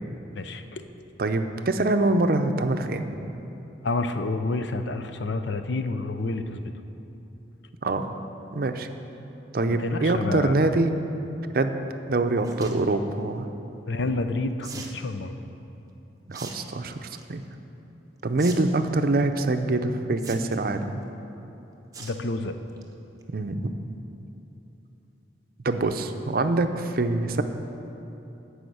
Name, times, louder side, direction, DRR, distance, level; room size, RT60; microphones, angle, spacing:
voice 1, 0.3-0.8 3.8-6.6 9.7-10.7 13.9-15.4 22.0-22.6, left 2 dB, 75° left, 9 dB, 0.6 m, -29 dB
voice 2, 1.2-3.2 7.8-8.2 8.5-8.9 9.5-11.0 11.5-11.7 12.1-13.5 16.3-17.4 18.2-21.0 23.3-23.7 25.6-27.4, right 2 dB, 55° right, 7 dB, 0.5 m, -24 dB
sound 1, 12.4-12.8 14.6-15.0 16.3-16.6 16.9-17.3 18.4-18.5 18.8-18.9 20.2-20.7 21.9-22.2 22.6-22.8 23.2-23.3 23.5-23.6, right 4 dB, 20° right, 0.8 m, -40 dB
11.5 x 5.0 x 7.9 m, 2.9 s
head